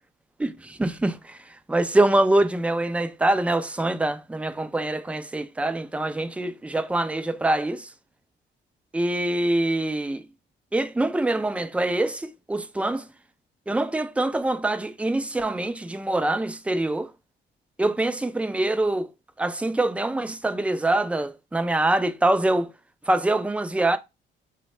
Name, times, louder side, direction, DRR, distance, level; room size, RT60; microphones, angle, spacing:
voice 1, 0.4-1.4 1.7-7.9 8.9-10.3 10.7-13.1 13.7-17.1 17.8-19.1 19.4-22.7 23.1-24.0, right 2 dB, 5° right, 0.3 m, -24 dB
3.4 x 2.1 x 3.1 m
cardioid pair, 90°, 20 cm